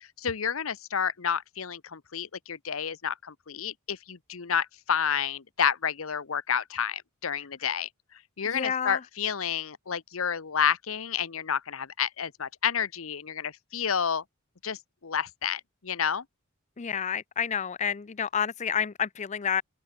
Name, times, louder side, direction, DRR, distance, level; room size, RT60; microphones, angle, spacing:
voice 1, 0.2-7.9 8.4-14.2 14.6-16.2, left 7 dB, 75° left, 0.9 m, -30 dB
voice 2, 8.5-9.0 16.8-19.6, left 7 dB, 35° left, 0.5 m, -29 dB
open air
head